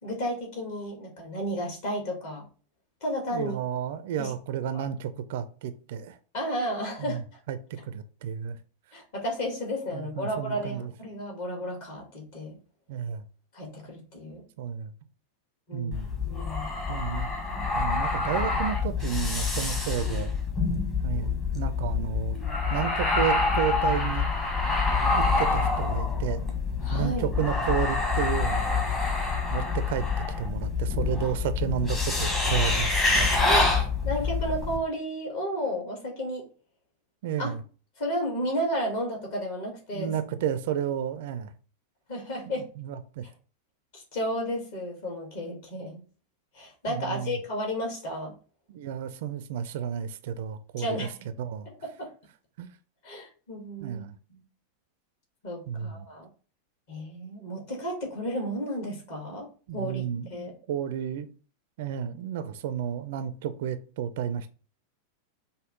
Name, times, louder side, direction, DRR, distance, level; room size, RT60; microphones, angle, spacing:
voice 1, 0.0-2.5 3.0-3.5 4.2-4.3 4.7-4.8 6.3-7.2 8.9-12.6 13.5-14.4 15.7-15.9 16.3-16.7 26.8-27.3 33.4-33.7 34.0-36.4 37.4-37.5 38.0-40.1 42.1-42.6 43.9-46.0 46.5-48.3 50.8-51.1 51.8-52.1 53.0-54.0 54.3-54.4 55.4-56.3 56.9-59.5 59.7-60.5, equal, 50° left, 1 dB, 1.6 m, -32 dB
voice 2, 3.3-6.2 7.0-7.2 7.5-7.6 7.9-8.6 9.9-10.9 12.9-13.2 14.6-14.9 15.7-16.1 16.9-17.3 17.7-20.3 21.0-22.4 22.7-24.3 25.1-26.4 26.9-28.9 29.5-30.1 30.4-33.4 37.2-37.6 39.9-41.5 42.5-43.3 46.9-47.4 48.7-51.1 51.4-51.7 52.6-52.7 53.8-54.2 55.7-56.1 59.7-61.3 61.8-64.5, right 9 dB, 55° right, 11 dB, 0.4 m, -32 dB
sound 1, 15.9-34.8, left 4 dB, 20° left, 1.0 m, -26 dB
5.3 x 2.0 x 3.6 m, 0.37 s
figure-of-eight pair, 90°, 0 cm